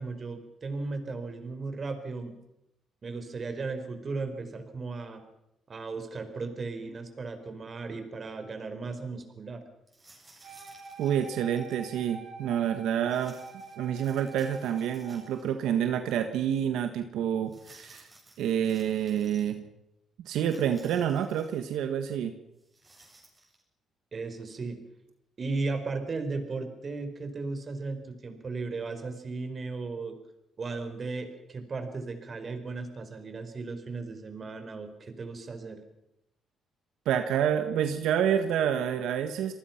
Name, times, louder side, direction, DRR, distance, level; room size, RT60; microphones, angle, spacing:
voice 1, 0.0-2.3 3.0-5.2 5.7-9.6 24.1-24.8 25.4-30.2 30.6-35.8, right 3 dB, 40° right, 8 dB, 4.5 m, -36 dB
sound 1, 9.9-11.8 13.1-15.6 15.9-16.0 17.5-19.5 20.4-21.6 22.6-23.6, right 2 dB, 20° right, 7.6 m, -57 dB
Wind instrument woodwind instrument, 10.4-15.3, right 4 dB, 70° right, 4.5 m, -46 dB
voice 2, 11.0-13.4 13.8-18.0 18.4-19.7 20.2-22.3 37.0-39.5, right 9 dB, 85° right, 7 dB, 1.5 m, -28 dB
27.5 x 19.5 x 5.9 m, 0.86 s
cardioid pair, 90°, 0 cm